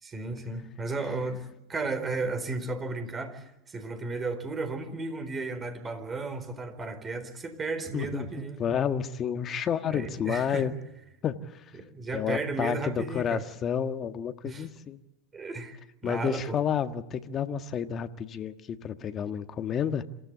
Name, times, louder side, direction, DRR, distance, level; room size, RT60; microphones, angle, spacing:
voice 1, 0.0-8.6 9.9-10.7 11.8-13.4 14.4-14.7 15.3-15.8 16.0-16.6, right 3 dB, 25° right, 9 dB, 4.3 m, -34 dB
voice 2, 7.9-8.3 8.6-10.7 11.2-11.6 12.1-15.0 16.0-20.0, left 8 dB, 35° left, 8 dB, 1.5 m, -30 dB
27.5 x 15.5 x 8.2 m, 0.91 s
hypercardioid pair, 95°, 0 cm